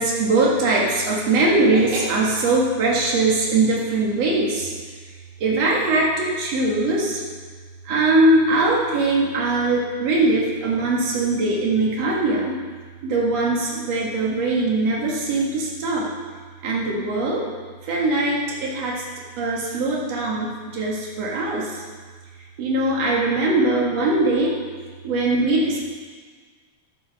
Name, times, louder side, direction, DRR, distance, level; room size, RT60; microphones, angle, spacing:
voice 1, 0.0-4.7 5.4-7.2 7.8-12.6 13.0-16.1 16.6-17.5 17.8-19.1 19.4-21.8 22.6-24.5 25.0-25.8, right 2 dB, 60° right, -3 dB, 2.8 m, -21 dB
12.5 x 6.4 x 6.3 m, 1.5 s
omnidirectional pair, 3.5 m